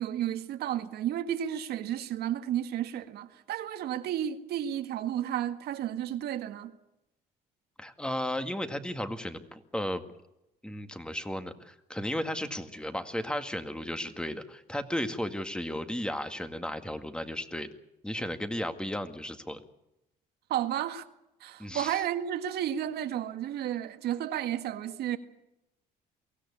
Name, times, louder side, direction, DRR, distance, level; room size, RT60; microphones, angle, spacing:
voice 1, 0.0-6.7 20.5-21.1 21.4-25.2, right 11 dB, 70° right, 1.8 m, -32 dB
voice 2, 7.8-10.0 10.6-17.7 18.0-19.6 21.6-22.0, left 1 dB, 5° left, 2.0 m, -34 dB
23.5 x 16.5 x 8.6 m
cardioid pair, 110°, 17 cm